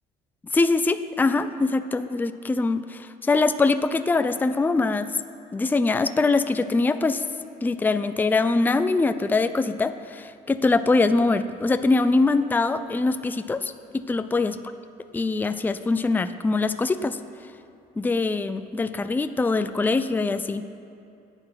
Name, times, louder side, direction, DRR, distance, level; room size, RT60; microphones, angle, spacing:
voice 1, 0.5-5.1 5.5-7.2 7.6-13.7 14.1-14.5 15.1-17.2 18.0-20.6, left 3 dB, 10° left, 11 dB, 0.4 m, -23 dB
14.0 x 9.0 x 5.8 m, 2.6 s
cardioid pair, 110°, 17 cm